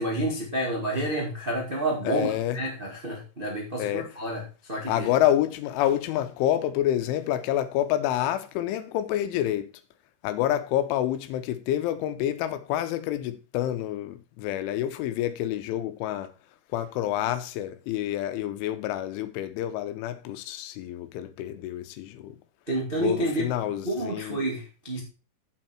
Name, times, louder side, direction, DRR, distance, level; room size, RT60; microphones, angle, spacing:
voice 1, 0.0-4.4 4.7-5.1 22.7-23.5 23.8-25.0, right 1 dB, 90° right, 0.4 m, -29 dB
voice 2, 2.0-2.6 3.8-4.2 4.9-9.7 10.2-16.3 16.7-22.4 23.0-24.4, left 12 dB, 85° left, 3.2 m, -28 dB
8.1 x 7.5 x 4.5 m
omnidirectional pair, 5.6 m